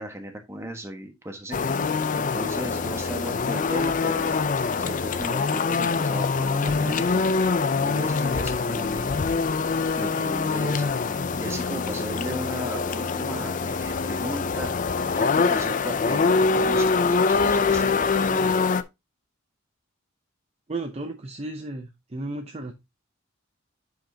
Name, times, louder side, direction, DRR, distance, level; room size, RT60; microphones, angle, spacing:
voice 1, 0.0-4.4 4.8-7.2 7.8-9.2 9.9-14.7 15.2-18.6, right 1 dB, 15° right, 4 dB, 1.3 m, -36 dB
sound 1, 1.5-18.8, left 4 dB, 40° left, 0.4 m, -24 dB
voice 2, 20.7-22.7, right 2 dB, 30° right, 5 dB, 0.6 m, -34 dB
8.8 x 5.2 x 2.8 m, 0.22 s
head